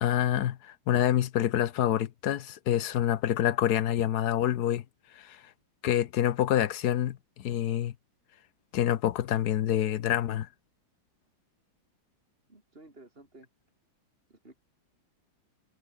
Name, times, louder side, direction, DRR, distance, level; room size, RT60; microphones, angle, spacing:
voice 1, 0.0-4.8 5.1-5.4 5.8-7.9 8.7-10.5, left 11 dB, 60° left, 1.3 m, -27 dB
voice 2, 12.5-13.5 14.3-14.6, right 2 dB, 25° right, 5.3 m, -53 dB
omnidirectional pair, 2.1 m